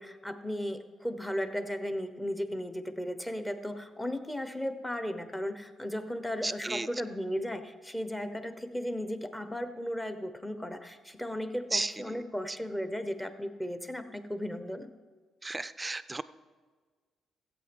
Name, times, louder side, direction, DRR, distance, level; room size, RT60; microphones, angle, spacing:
voice 1, 0.0-14.9, equal, 10° left, 9 dB, 1.0 m, -35 dB
voice 2, 6.4-6.9 11.7-11.9 15.4-16.2, right 2 dB, 20° right, 15 dB, 0.5 m, -33 dB
15.0 x 8.1 x 5.3 m, 1.5 s
cardioid pair, 90°, 0 cm